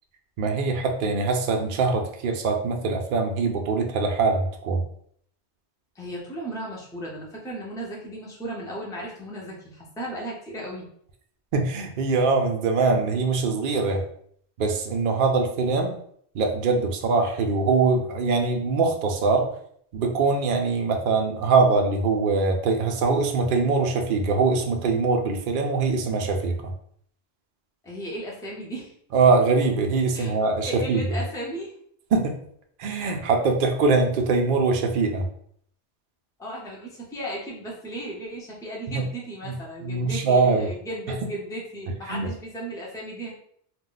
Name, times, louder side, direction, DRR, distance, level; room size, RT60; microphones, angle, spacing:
voice 1, 0.4-4.8 11.5-14.0 14.6-15.9 16.3-19.5 19.9-26.7 29.1-31.0 32.1-32.4 32.8-35.3 38.9-39.0 39.5-39.6 39.8-40.7 42.1-42.3, right 4 dB, 60° right, 3 dB, 0.6 m, -23 dB
voice 2, 5.9-10.9 27.8-28.9 30.1-30.3 30.7-31.7 36.4-43.3, right 1 dB, 5° left, -4 dB, 0.5 m, -35 dB
2.4 x 2.1 x 3.7 m, 0.64 s
omnidirectional pair, 1.1 m